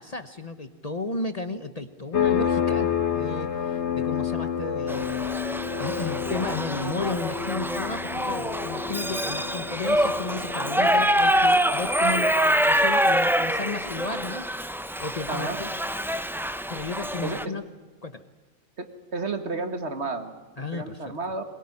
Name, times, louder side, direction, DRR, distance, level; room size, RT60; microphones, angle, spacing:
voice 1, 0.0-5.3 5.8-14.5 15.0-15.7 16.7-17.6 18.0-18.2 20.6-21.1, left 3 dB, 35° left, 9 dB, 1.0 m, -33 dB
sound 1, 2.1-12.5, left 8 dB, 60° left, 1.6 m, -30 dB
Shout / Livestock farm animals working animals, 4.9-17.5, equal, 5° right, 0.5 m, -25 dB
voice 2, 18.8-21.4, right 3 dB, 60° right, 7 dB, 2.1 m, -32 dB
22.0 x 21.0 x 9.9 m, 1.3 s
omnidirectional pair, 1.3 m